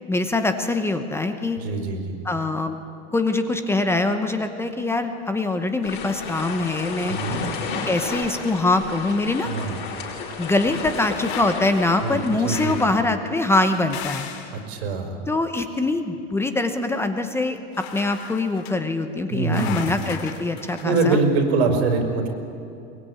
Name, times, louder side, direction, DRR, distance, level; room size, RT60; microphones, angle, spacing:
voice 1, 0.1-1.6 2.2-2.8 3.1-7.2 7.8-9.5 10.4-14.3 15.3-17.6 17.9-21.2, left 2 dB, 10° left, 7 dB, 0.9 m, -23 dB
voice 2, 1.6-2.2 7.1-7.4 9.4-9.8 12.0-12.9 14.5-15.2 19.3-20.0 20.8-22.3, right 3 dB, 80° right, 5 dB, 4.9 m, -24 dB
sound 1, 5.8-12.9, left 5 dB, 35° left, 5.5 m, -32 dB
sound 2, 10.7-11.8 12.5-12.9 13.4-14.6 17.7-18.7 19.5-21.2, left 9 dB, 75° left, 2.7 m, -37 dB
22.5 x 21.5 x 9.8 m, 2.6 s
supercardioid pair, 155°, 32 cm